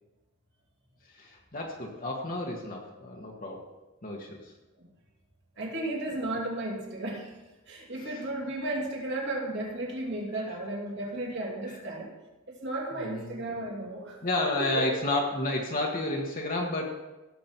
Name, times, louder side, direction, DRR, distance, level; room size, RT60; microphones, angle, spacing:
voice 1, 1.2-3.6 4.0-4.5 8.0-8.2 13.0-13.4 14.2-17.0, left 2 dB, 40° left, -1 dB, 1.4 m, -31 dB
voice 2, 5.6-7.3 7.7-12.2 12.5-14.2 14.6-14.9, right 2 dB, 55° right, -1 dB, 2.9 m, -34 dB
16.5 x 7.4 x 4.5 m, 1.1 s
head